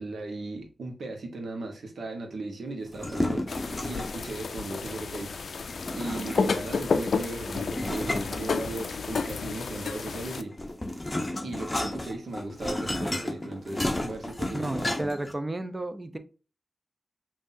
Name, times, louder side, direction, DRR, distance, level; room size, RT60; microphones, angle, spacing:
voice 1, 0.0-5.5 5.9-10.6 11.4-15.1, right 2 dB, 85° right, 3 dB, 1.1 m, -37 dB
sound 1, 2.9-4.2 5.7-6.7 7.7-9.1 10.2-15.3, left 1 dB, 20° left, 0.8 m, -32 dB
sound 2, 3.5-10.4, left 4 dB, 80° left, 0.3 m, -31 dB
voice 2, 14.5-16.2, right 2 dB, 25° right, 9 dB, 0.6 m, -32 dB
5.7 x 2.7 x 2.6 m, 0.34 s
wide cardioid pair, 80°, 0 cm